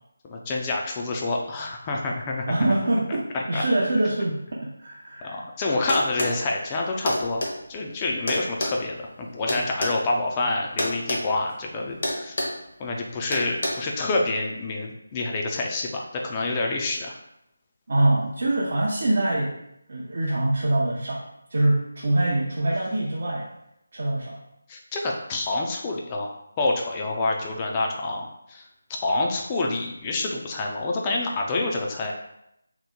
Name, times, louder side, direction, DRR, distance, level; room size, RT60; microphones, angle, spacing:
voice 1, 0.2-2.6 3.3-3.6 5.2-7.4 7.7-12.4 12.8-17.2 24.7-28.6 29.0-32.1, left 2 dB, 20° left, 0 dB, 0.4 m, -27 dB
voice 2, 2.5-5.3 17.9-19.6 19.9-23.5 23.9-24.4, right 1 dB, 55° right, -5 dB, 0.5 m, -24 dB
sound 1, 5.9-6.4 7.1-7.5 8.3-10.0 10.8-11.2 11.5-11.7 12.0-12.6 13.3-13.7, left 1 dB, 55° left, 0.9 m, -27 dB
2.9 x 2.1 x 3.6 m, 0.81 s
figure-of-eight pair, 160°, 0 cm